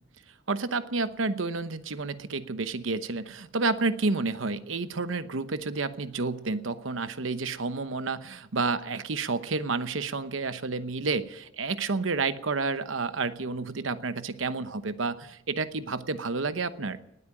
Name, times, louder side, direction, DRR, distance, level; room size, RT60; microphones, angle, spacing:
voice 1, 0.5-17.0, right 3 dB, 85° right, 12 dB, 0.9 m, -30 dB
19.0 x 8.6 x 8.7 m, 0.85 s
head